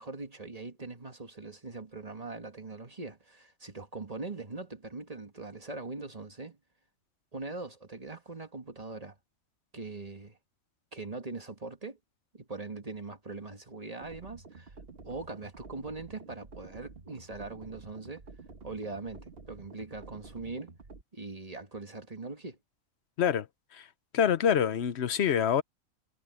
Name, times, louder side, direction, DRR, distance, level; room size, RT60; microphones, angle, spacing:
voice 1, 0.0-6.6 7.3-9.2 9.7-10.4 10.9-12.0 12.3-14.7 15.0-18.2 18.6-20.7 21.1-22.6, right 3 dB, 30° right, 1.6 m, -41 dB
sound 1, 14.0-21.0, right 4 dB, 45° right, 1.8 m, -50 dB
voice 2, 24.1-25.6, left 8 dB, 60° left, 1.0 m, -26 dB
omnidirectional pair, 1.4 m